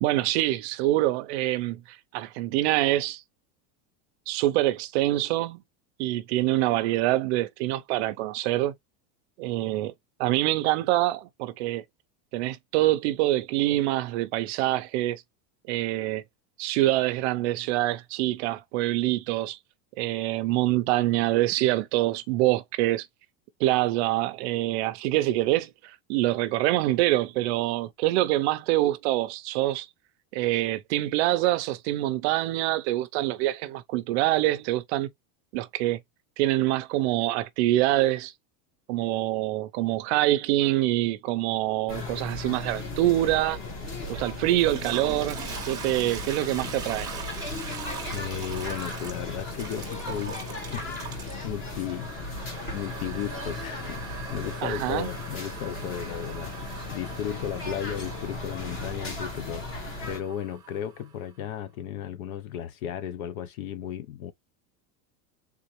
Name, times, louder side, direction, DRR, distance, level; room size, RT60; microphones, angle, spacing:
voice 1, 0.0-3.2 4.3-5.6 6.0-8.7 9.4-9.9 10.2-11.8 12.3-15.2 15.7-16.2 16.6-19.6 20.0-23.1 23.6-29.9 30.3-35.1 35.5-36.0 36.4-38.3 38.9-43.6 44.1-45.4 45.7-47.1 54.6-55.1, right 16 dB, 45° right, 0.5 m, -25 dB
sound 1, 41.9-60.2, left 2 dB, 25° left, 1.1 m, -36 dB
Toilet flush, 44.5-61.2, right 7 dB, 10° right, 0.8 m, -42 dB
voice 2, 48.1-52.1 52.7-64.3, left 10 dB, 60° left, 0.6 m, -35 dB
3.7 x 2.9 x 3.0 m
supercardioid pair, 170°, 48 cm